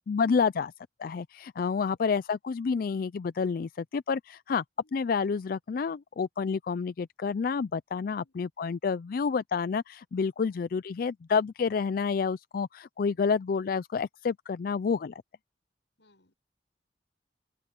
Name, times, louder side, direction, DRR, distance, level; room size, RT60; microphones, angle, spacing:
voice 1, 0.1-0.7 1.0-4.6 4.9-15.1, left 5 dB, 55° left, 0.4 m, -29 dB
voice 2, 8.0-8.4 10.4-10.6 13.1-13.3 16.0-16.3, left 2 dB, 90° left, 6.8 m, -66 dB
open air
head